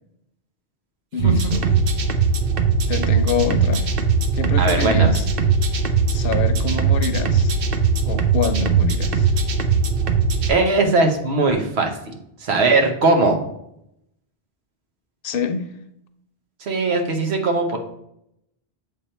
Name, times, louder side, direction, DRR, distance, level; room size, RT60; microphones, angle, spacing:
voice 1, 1.1-1.7 2.9-3.9 4.4-5.3 6.1-7.5 8.1-9.3 15.2-15.7, left 6 dB, 65° left, 9 dB, 0.8 m, -26 dB
sound 1, 1.2-10.5, right 5 dB, 65° right, 0.9 m, -20 dB
voice 2, 4.6-5.2 10.5-12.1 12.4-13.5 16.6-17.8, right 3 dB, 85° right, 4 dB, 1.2 m, -19 dB
7.1 x 3.6 x 4.3 m, 0.79 s
omnidirectional pair, 1.1 m